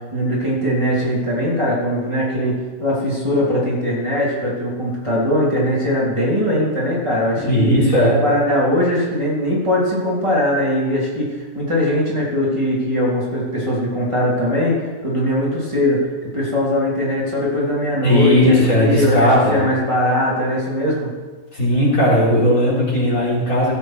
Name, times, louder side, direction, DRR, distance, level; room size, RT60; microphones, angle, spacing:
voice 1, 0.1-7.7 8.1-11.3 11.5-21.1, left 1 dB, 20° right, -6 dB, 3.3 m, -20 dB
voice 2, 7.4-8.2 18.0-19.6 21.5-23.7, equal, 75° left, -8 dB, 4.7 m, -16 dB
16.0 x 8.6 x 4.6 m, 1.4 s
omnidirectional pair, 1.5 m